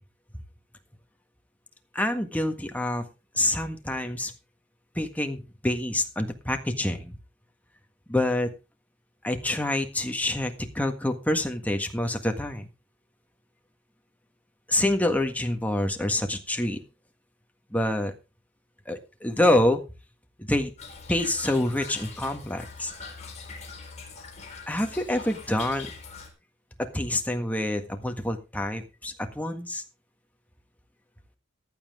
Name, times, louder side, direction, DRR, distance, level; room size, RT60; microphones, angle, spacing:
voice 1, 1.9-3.0 3.3-4.3 4.9-7.2 8.1-8.5 9.2-12.7 14.7-16.8 17.7-18.1 18.8-19.8 20.4-20.7 21.1-22.9 24.7-25.9 26.9-29.8, left 1 dB, 10° left, 5 dB, 1.6 m, -27 dB
Toilet flush / Trickle dribble, 20.8-26.3, left 5 dB, 35° left, 4.2 m, -42 dB
15.0 x 10.0 x 3.7 m, 0.30 s
head